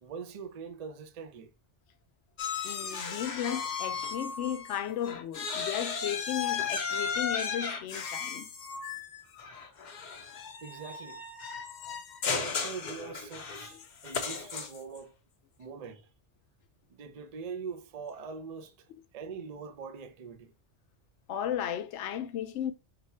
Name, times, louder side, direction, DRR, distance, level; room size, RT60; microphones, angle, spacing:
voice 1, 0.0-1.5 10.6-11.2 12.3-15.2 15.6-16.1 16.9-20.5, right 5 dB, 45° right, 0.5 m, -43 dB
sound 1, 2.4-4.8 5.0-15.0, left 6 dB, 50° left, 0.6 m, -35 dB
voice 2, 2.6-8.5 13.7-13.8 21.3-22.7, left 10 dB, 85° left, 0.9 m, -35 dB
4.0 x 2.3 x 4.2 m
omnidirectional pair, 1.2 m